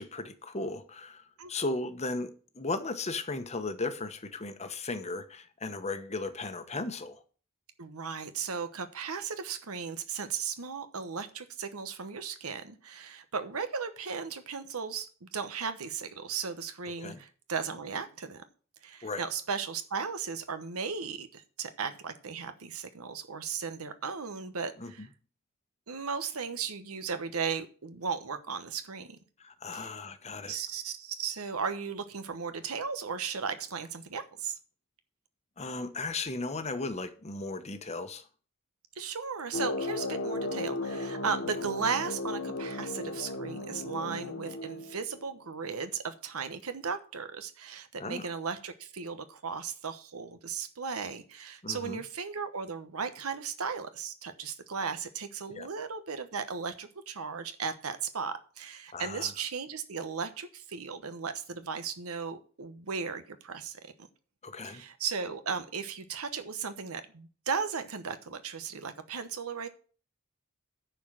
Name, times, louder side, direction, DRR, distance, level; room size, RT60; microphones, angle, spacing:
voice 1, 0.0-7.2 17.0-17.2 19.0-19.2 24.8-25.1 29.4-30.6 35.6-38.3 48.0-48.3 51.6-52.0 55.5-55.7 58.9-59.3 64.4-64.8, left 3 dB, 30° left, 1.1 m, -36 dB
voice 2, 7.8-18.4 18.8-25.1 25.9-29.2 29.7-29.9 30.5-34.6 39.0-63.8 64.6-69.7, right 5 dB, 85° right, 1.0 m, -36 dB
sound 1, 39.5-45.3, left 2 dB, 50° left, 1.1 m, -35 dB
10.0 x 4.6 x 7.4 m
head